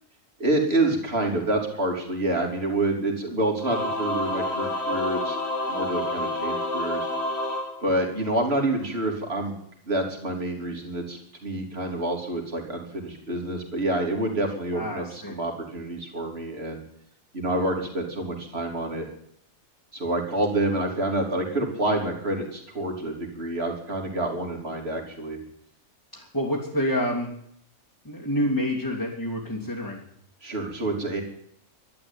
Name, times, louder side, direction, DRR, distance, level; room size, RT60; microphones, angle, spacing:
voice 1, 0.4-5.4 5.7-7.1 7.8-9.6 9.9-16.8 17.3-19.1 19.9-25.4 30.4-31.2, right 1 dB, 50° right, 2 dB, 3.7 m, -27 dB
Singing / Musical instrument, 3.6-8.5, left 1 dB, 50° left, 2.7 m, -29 dB
voice 2, 14.7-15.4 26.1-27.3 28.0-30.0, equal, 15° left, -3 dB, 2.7 m, -28 dB
12.0 x 12.0 x 8.9 m, 0.68 s
omnidirectional pair, 1.4 m